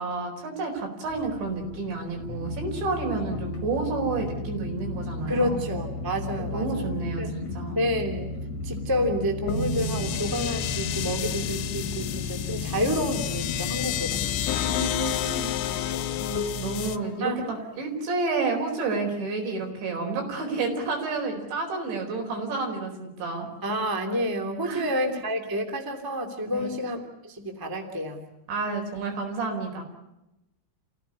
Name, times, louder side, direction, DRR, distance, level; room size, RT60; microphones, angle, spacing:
voice 1, 0.0-5.7 6.5-7.8 14.6-15.5 16.2-23.5 24.6-24.9 26.5-26.7 28.5-29.8, right 3 dB, 75° right, 3 dB, 6.7 m, -30 dB
sound 1, 1.1-14.8, left 3 dB, 45° left, 3.1 m, -35 dB
voice 2, 5.3-6.9 7.2-7.3 7.7-8.3 8.6-14.4 15.9-16.2 17.2-17.4 23.6-28.2, equal, 5° right, 4 dB, 1.8 m, -29 dB
sound 2, 9.5-17.0, left 6 dB, 90° left, 3.5 m, -31 dB
sound 3, 14.5-17.5, left 12 dB, 70° left, 2.3 m, -32 dB
29.5 x 16.5 x 9.6 m, 0.93 s
omnidirectional pair, 5.3 m